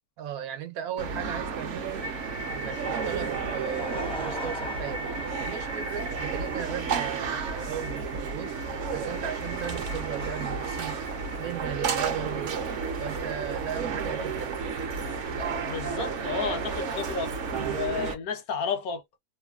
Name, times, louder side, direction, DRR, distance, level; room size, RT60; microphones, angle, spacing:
voice 1, 0.2-2.1 2.5-5.1 5.4-8.6 8.9-11.0 11.4-12.6 13.0-14.7, right 9 dB, 75° right, 1.1 m, -36 dB
sound 1, 1.0-18.1, right 5 dB, 60° right, 0.9 m, -32 dB
sound 2, 1.5-15.8, right 1 dB, 35° right, 0.6 m, -42 dB
Laughter / Crowd, 3.3-10.2, equal, 10° left, 0.3 m, -42 dB
voice 2, 15.6-17.3 17.7-19.0, left 6 dB, 75° left, 1.2 m, -32 dB
3.2 x 2.2 x 2.3 m
omnidirectional pair, 1.6 m